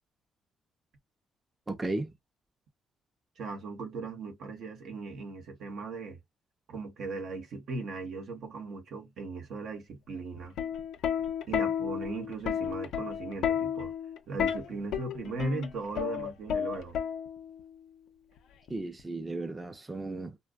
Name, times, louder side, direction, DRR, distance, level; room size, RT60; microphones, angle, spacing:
voice 1, 1.7-2.1 18.7-20.4, right 2 dB, 20° right, 0.5 m, -35 dB
voice 2, 3.4-6.2 6.7-10.6 11.5-13.9 14.3-17.0, right 3 dB, 70° right, 0.9 m, -38 dB
Plucked string instrument, 10.4-17.6 18.7-19.0, left 8 dB, 80° left, 0.5 m, -32 dB
2.5 x 2.2 x 2.3 m
cardioid pair, 90°, 0 cm